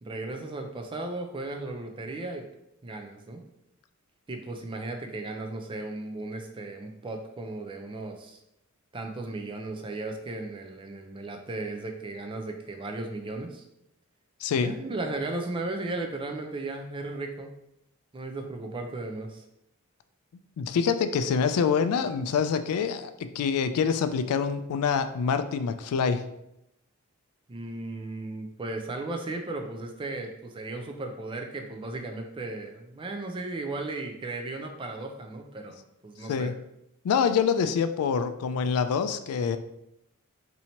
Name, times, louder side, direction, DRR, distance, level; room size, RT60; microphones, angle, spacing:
voice 1, 0.0-2.5 2.8-3.4 4.3-8.4 8.9-13.6 14.5-17.5 18.1-19.4 27.5-36.5, right 2 dB, 25° right, 4 dB, 0.3 m, -36 dB
voice 2, 14.4-14.7 20.6-26.2 36.3-36.5 37.0-39.6, left 6 dB, 85° left, 11 dB, 0.3 m, -26 dB
2.8 x 2.7 x 4.3 m, 0.83 s
head